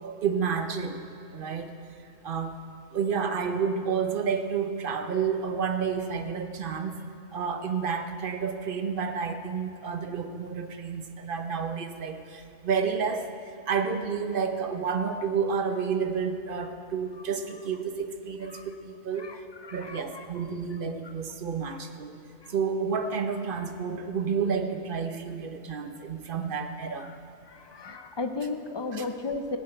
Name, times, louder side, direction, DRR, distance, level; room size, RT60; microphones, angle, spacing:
voice 1, 0.0-1.0 1.3-1.7 2.2-2.6 2.9-7.0 7.3-13.3 13.7-19.4 19.7-22.2 22.5-27.1 28.9-29.1, right 6 dB, 45° right, 7 dB, 0.9 m, -30 dB
voice 2, 19.2-20.3 21.7-21.8 22.4-22.5 27.5-29.6, left 3 dB, 30° left, 7 dB, 0.5 m, -35 dB
17.0 x 10.5 x 4.4 m, 2.9 s
omnidirectional pair, 1.4 m